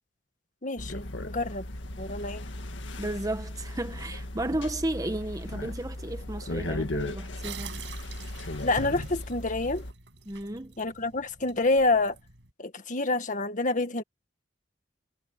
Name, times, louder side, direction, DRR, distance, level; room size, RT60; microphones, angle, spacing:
voice 1, 0.6-1.6 2.0-2.4 8.6-9.8 10.8-12.2 12.6-14.0, left 2 dB, 45° left, 1.8 m, -27 dB
sound 1, 0.8-9.9, left 1 dB, 80° left, 1.9 m, -36 dB
voice 2, 3.0-7.8 10.2-10.7, right 1 dB, 20° right, 1.3 m, -33 dB
sound 2, 7.4-12.5, right 4 dB, 75° right, 7.0 m, -45 dB
head